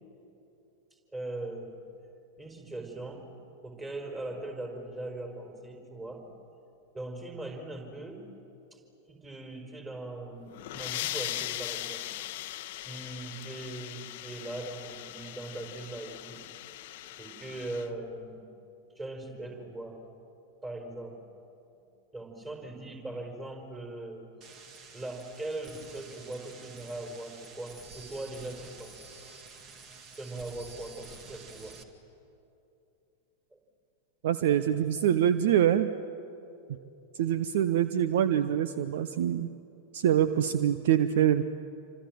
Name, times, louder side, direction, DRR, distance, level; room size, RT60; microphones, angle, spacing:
voice 1, 1.1-1.8 2.4-3.3 3.6-6.3 6.9-8.3 8.7-8.8 9.1-12.1 12.8-16.4 17.2-18.5 18.9-20.1 20.6-21.2 22.1-24.3 24.9-28.9 30.1-31.8 33.5-33.6, right 2 dB, 15° right, 3 dB, 4.9 m, -40 dB
sound 1, 10.4-17.9, left 15 dB, 50° left, 0.9 m, -39 dB
sound 2, 24.4-31.8, right 4 dB, 35° right, 2.3 m, -50 dB
voice 2, 34.2-35.9 36.7-36.8 37.1-39.5 39.9-41.4, right 10 dB, 55° right, 13 dB, 0.8 m, -25 dB
28.0 x 25.5 x 7.6 m, 2.7 s
figure-of-eight pair, 90°, 0 cm